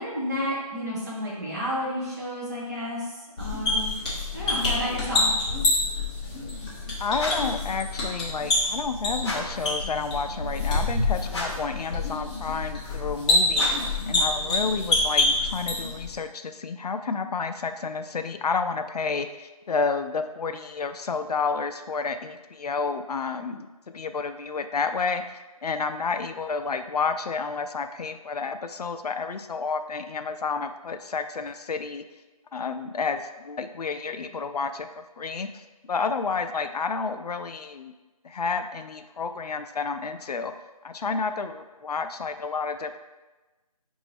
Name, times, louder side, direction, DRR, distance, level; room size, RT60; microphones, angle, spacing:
voice 1, 0.0-3.9 4.3-5.3, equal, 25° right, -6 dB, 0.8 m, -31 dB
sound 1, 3.4-16.1, left 2 dB, 10° left, 0.6 m, -27 dB
voice 2, 7.0-25.2 25.6-32.1 32.5-37.9 38.2-40.5 40.8-43.0, left 4 dB, 90° left, 8 dB, 0.4 m, -30 dB
sound 2, 7.1-7.6 9.2-9.7 11.3-11.8 13.5-14.0, left 1 dB, 45° left, 0.9 m, -33 dB
5.2 x 2.7 x 3.2 m, 1.2 s
figure-of-eight pair, 165°, 19 cm